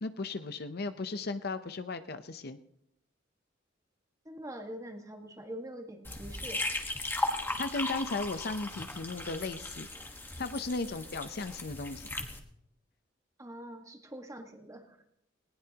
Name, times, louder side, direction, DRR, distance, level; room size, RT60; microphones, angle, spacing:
voice 1, 0.0-2.6 7.6-9.9 10.4-12.1, left 3 dB, 55° left, 11 dB, 0.7 m, -36 dB
voice 2, 4.2-6.6 13.4-15.0, equal, 15° right, 5 dB, 1.6 m, -44 dB
sound 1, 6.0-12.4, left 2 dB, 10° left, 1.4 m, -37 dB
19.5 x 19.0 x 2.9 m, 0.76 s
head